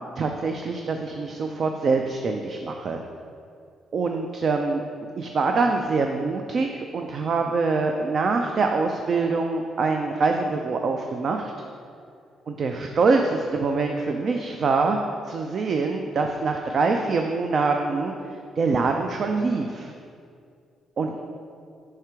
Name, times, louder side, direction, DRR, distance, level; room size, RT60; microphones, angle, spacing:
voice 1, 0.2-3.0 3.9-4.8 5.2-11.5 12.5-15.0 15.3-18.1 18.6-19.9 21.0-21.2, right 4 dB, 50° right, 4 dB, 0.4 m, -24 dB
5.7 x 4.8 x 4.5 m, 2.3 s
cardioid pair, 90°, 0 cm